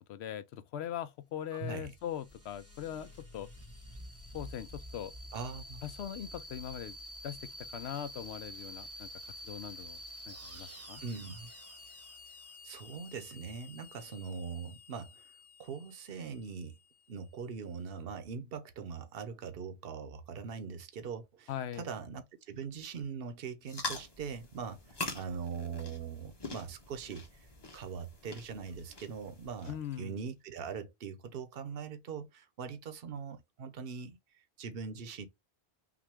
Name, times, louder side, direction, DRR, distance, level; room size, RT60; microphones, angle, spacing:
voice 1, 0.1-3.5 4.3-5.1 5.8-7.0 7.2-10.0 10.3-11.0 21.5-21.9 29.7-30.2, left 10 dB, 80° left, 0.8 m, -41 dB
sound 1, 1.5-17.8, equal, 15° right, 0.8 m, -49 dB
voice 2, 1.5-1.9 5.3-5.8 11.0-11.5 12.6-15.3 15.6-16.8 17.1-27.5 27.7-35.3, right 6 dB, 65° right, 0.9 m, -42 dB
sound 2, 23.6-30.0, left 2 dB, 25° left, 1.0 m, -44 dB
5.9 x 2.2 x 3.4 m
omnidirectional pair, 1.1 m